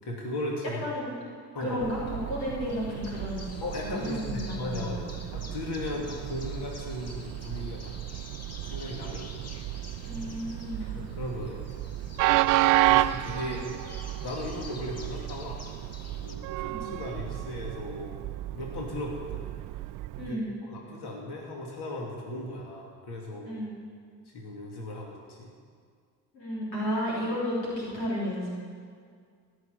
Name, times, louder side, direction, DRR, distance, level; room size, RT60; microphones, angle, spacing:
voice 1, 0.0-0.8 1.5-1.8 3.6-7.9 8.7-9.3 10.8-11.8 12.9-13.6 14.2-15.6 16.2-18.2 18.5-19.4 20.2-23.5 24.3-25.5, left 1 dB, 50° left, -1 dB, 2.8 m, -37 dB
voice 2, 0.8-5.4 10.0-11.0 13.4-13.5 16.7-16.9 20.2-20.6 23.4-23.8 26.3-28.6, equal, 90° left, -7 dB, 3.6 m, -33 dB
Train, 1.8-20.3, right 16 dB, 45° right, 0.4 m, -32 dB
sound 1, 2.7-16.4, left 2 dB, 30° left, 1.7 m, -48 dB
16.5 x 6.4 x 9.3 m, 2.1 s
hypercardioid pair, 50°, 50 cm